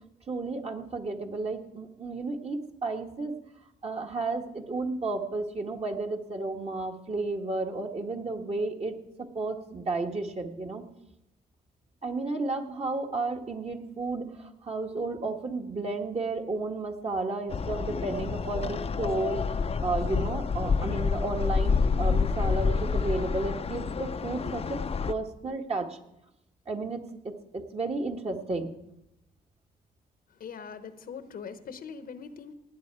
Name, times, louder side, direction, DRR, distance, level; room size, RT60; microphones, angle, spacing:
voice 1, 0.3-3.3 3.8-9.0 9.3-10.8 12.0-14.3 14.6-24.8 25.1-25.9 26.7-28.7, right 3 dB, 40° right, 2 dB, 1.8 m, -32 dB
sound 1, 17.5-25.1, left 5 dB, 40° left, 0.6 m, -28 dB
voice 2, 30.4-32.5, left 6 dB, 65° left, 11 dB, 1.0 m, -41 dB
18.0 x 8.7 x 4.8 m, 0.85 s
cardioid pair, 75°, 16 cm